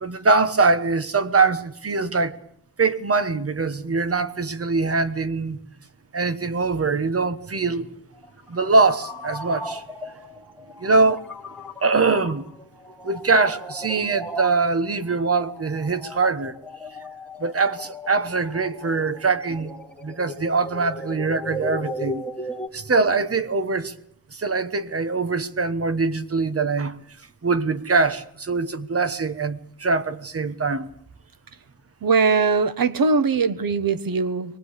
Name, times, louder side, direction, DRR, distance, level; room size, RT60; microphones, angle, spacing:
voice 1, 0.0-2.4 2.8-5.6 6.1-7.9 8.5-9.8 10.8-11.2 11.8-12.4 13.0-16.5 17.4-19.7 20.0-22.2 22.7-23.9 24.3-27.0 27.4-30.9, right 4 dB, 40° right, 1.2 m, -22 dB
sound 1, 8.2-22.7, left 1 dB, 5° left, 2.5 m, -36 dB
voice 2, 32.0-34.6, right 4 dB, 70° right, 1.2 m, -21 dB
23.5 x 19.0 x 8.3 m
wide cardioid pair, 160°, 36 cm